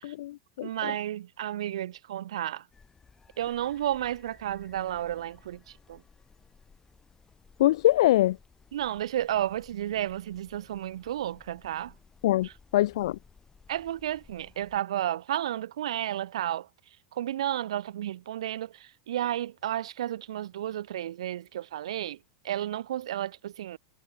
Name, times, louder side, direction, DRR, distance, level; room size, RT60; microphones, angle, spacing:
voice 1, 0.0-0.9 7.6-8.4 12.2-13.2, left 15 dB, 75° left, 0.4 m, -24 dB
voice 2, 0.6-2.6 3.4-6.0 8.7-11.9 12.4-12.5 13.7-16.7 17.1-22.2 22.4-23.8, right 12 dB, 80° right, 1.3 m, -32 dB
sound 1, 2.7-14.8, left 5 dB, 20° left, 5.2 m, -58 dB
hypercardioid pair, 100°, 3 cm